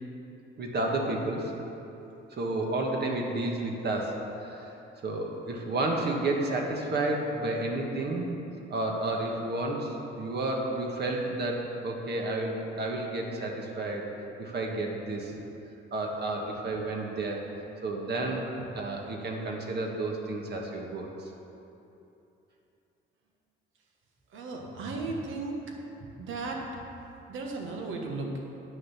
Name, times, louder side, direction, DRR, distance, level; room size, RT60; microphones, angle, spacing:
voice 1, 0.6-1.5 2.3-4.7 5.0-8.3 8.7-14.0 14.4-15.3 15.9-17.4 17.8-18.4 18.7-21.1, right 2 dB, 55° right, 0 dB, 1.5 m, -31 dB
voice 2, 24.3-25.7 26.2-26.6 27.3-28.5, right 3 dB, 80° right, 0 dB, 1.5 m, -35 dB
9.5 x 6.5 x 5.8 m, 2.9 s
cardioid pair, 90°, 20 cm